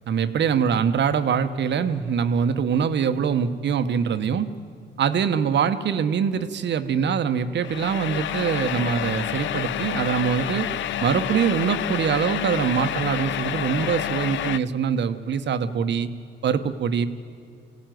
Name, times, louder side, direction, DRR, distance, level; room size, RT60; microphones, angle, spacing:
voice 1, 0.1-4.5 5.0-10.7 11.0-16.1 16.4-17.1, right 7 dB, 60° right, 10 dB, 1.2 m, -23 dB
sound 1, 7.6-14.6, left 11 dB, 70° left, 0.7 m, -29 dB
23.5 x 17.0 x 9.3 m, 2.3 s
cardioid pair, 90°, 20 cm